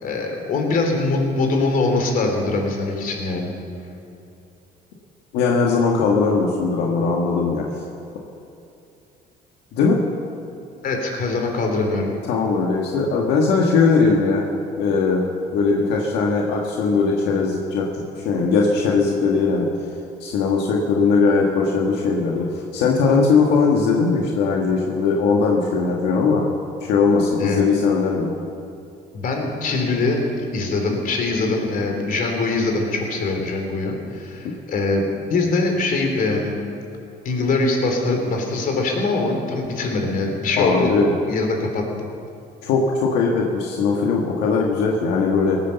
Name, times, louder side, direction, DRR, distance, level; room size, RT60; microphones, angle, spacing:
voice 1, 0.0-3.5 10.8-12.1 27.4-27.6 29.1-36.6 37.2-40.9 41.3-41.8, left 3 dB, 55° left, 2 dB, 3.3 m, -22 dB
voice 2, 5.3-7.6 9.7-10.0 12.3-14.4 14.8-15.2 15.5-19.7 20.2-26.4 26.8-28.3 34.4-34.6 40.6-41.1 42.6-45.6, left 4 dB, 90° left, -1 dB, 1.6 m, -19 dB
18.0 x 10.0 x 6.8 m, 2.6 s
cardioid pair, 110°, 17 cm